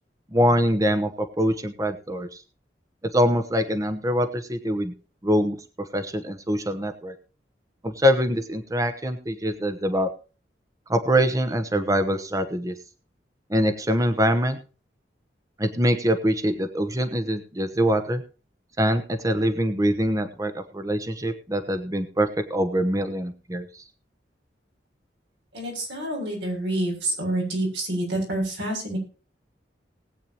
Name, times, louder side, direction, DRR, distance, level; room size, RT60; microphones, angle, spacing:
voice 1, 0.3-1.1 1.4-2.4 3.1-4.9 5.2-5.6 5.9-7.1 7.8-10.1 10.9-12.7 13.5-14.6 15.6-18.2 18.8-23.8, equal, 20° right, 8 dB, 1.0 m, -24 dB
voice 2, 25.5-29.0, right 1 dB, 90° right, 1 dB, 7.0 m, -27 dB
19.5 x 8.5 x 3.0 m, 0.35 s
head